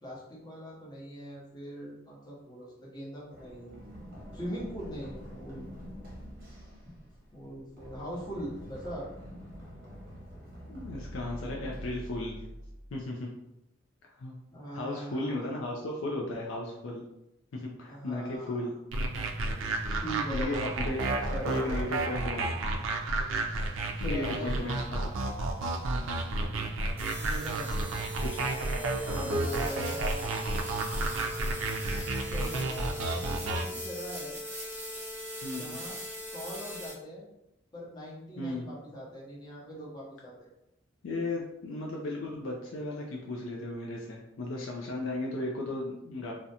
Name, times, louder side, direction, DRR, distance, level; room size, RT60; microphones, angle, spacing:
voice 1, 0.0-3.8 4.3-5.7 7.3-9.1 14.5-15.5 17.9-18.7 19.9-20.7 21.0-21.7 24.0-24.5 27.2-27.7 28.9-30.7 32.3-34.4 35.6-36.0 36.3-37.3 37.7-40.5, equal, 20° left, -5 dB, 0.8 m, -41 dB
Run, 3.3-13.0, equal, 50° right, 0.8 m, -45 dB
voice 2, 10.7-12.4 12.9-13.3 14.0-14.3 14.7-17.0 17.5-18.7 20.3-21.0 21.5-22.5 24.0-25.0 25.9-26.3 28.3-28.4 29.2-29.4 35.4-35.8 38.4-38.7 41.0-46.3, left 2 dB, 75° left, -1 dB, 0.4 m, -35 dB
sound 1, 18.9-33.7, right 2 dB, 80° right, 0.4 m, -31 dB
sound 2, 27.0-36.9, equal, 10° right, 0.8 m, -40 dB
2.4 x 2.1 x 2.7 m, 0.87 s
head